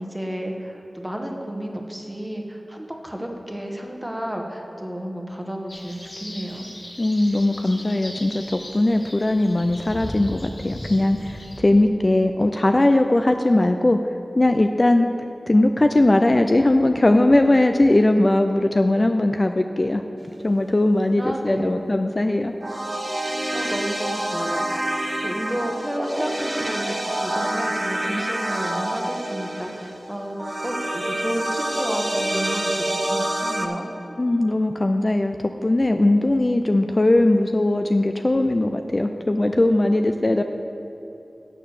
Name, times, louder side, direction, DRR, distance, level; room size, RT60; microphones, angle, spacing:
voice 1, 0.0-6.7 21.1-21.9 23.5-33.9, equal, 10° right, 2 dB, 1.1 m, -31 dB
sound 1, 5.7-11.6, left 1 dB, 60° left, 1.4 m, -38 dB
voice 2, 7.0-14.0 14.4-15.1 15.5-20.0 20.4-22.5 34.2-35.4 35.6-40.4, left 1 dB, 40° left, 6 dB, 0.3 m, -19 dB
sound 2, 22.6-33.7, right 1 dB, 30° right, 0.8 m, -27 dB
7.5 x 6.7 x 6.5 m, 2.9 s
wide cardioid pair, 65°, 0 cm